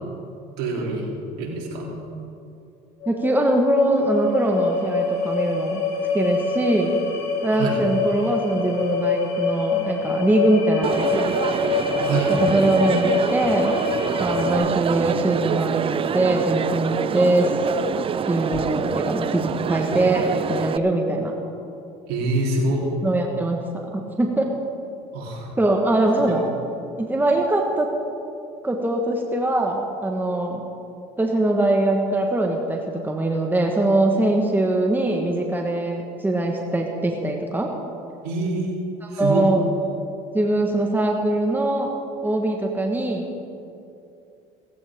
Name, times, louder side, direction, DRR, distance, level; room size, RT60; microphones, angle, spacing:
voice 1, 0.6-2.0 7.5-7.8 12.0-12.3 22.1-22.9 25.1-25.5 26.2-26.3 38.2-38.8 39.1-39.5, right 2 dB, 75° right, -3 dB, 3.8 m, -26 dB
sound 1, 3.0-14.6, left 5 dB, 90° left, 3.7 m, -26 dB
voice 2, 3.1-5.8 6.1-7.0 7.4-11.0 12.3-13.8 14.2-17.5 18.3-21.3 23.0-23.6 23.9-24.5 25.6-26.5 27.0-27.9 28.6-30.6 31.2-37.7 39.0-39.6 40.3-41.9 42.2-43.3, right 2 dB, 10° right, 1 dB, 1.6 m, -22 dB
Crowd, 10.8-20.8, right 7 dB, 35° right, 0.5 m, -26 dB
17.0 x 15.5 x 3.8 m, 2.7 s
supercardioid pair, 90°, 16 cm